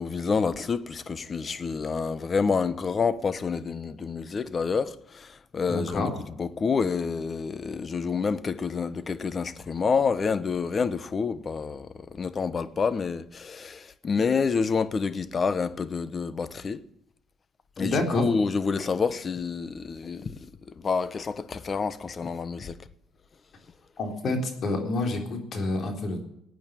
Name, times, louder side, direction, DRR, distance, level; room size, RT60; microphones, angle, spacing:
voice 1, 0.0-6.1 6.4-16.8 17.8-20.4 20.8-22.8, left 5 dB, 35° left, 1.0 m, -28 dB
voice 2, 5.7-6.1 17.8-18.2 24.0-26.2, left 2 dB, 50° left, 3.9 m, -28 dB
16.5 x 9.1 x 8.9 m
cardioid pair, 110°, 0 cm